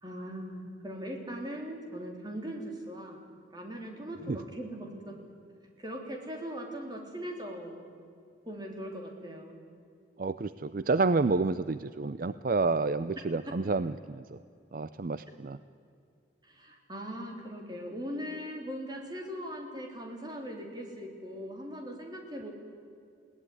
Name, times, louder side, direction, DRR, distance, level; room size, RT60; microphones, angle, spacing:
voice 1, 0.0-3.2 3.5-5.2 5.8-7.8 8.4-9.6 16.4-22.5, equal, 20° right, 2 dB, 3.4 m, -40 dB
voice 2, 10.2-14.4 14.7-15.6, right 3 dB, 50° right, 14 dB, 0.5 m, -29 dB
21.5 x 17.0 x 9.8 m, 2.5 s
head